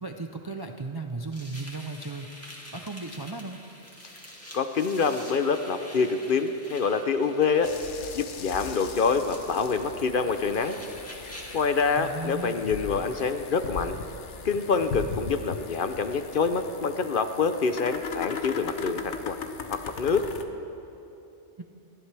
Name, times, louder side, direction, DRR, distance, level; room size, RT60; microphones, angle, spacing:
voice 1, 0.0-2.3 2.7-3.6 12.0-12.6 21.6-21.7, right 3 dB, 30° right, 4 dB, 0.4 m, -35 dB
sound 1, 1.3-11.7, equal, 10° left, 2.0 m, -47 dB
voice 2, 4.5-7.7 8.1-10.8 11.5-14.0 14.4-19.4 19.7-20.2, left 5 dB, 55° left, 8 dB, 0.8 m, -26 dB
sound 2, 7.6-20.4, left 5 dB, 80° left, 1.2 m, -39 dB
28.5 x 11.5 x 3.4 m, 2.9 s
omnidirectional pair, 1.2 m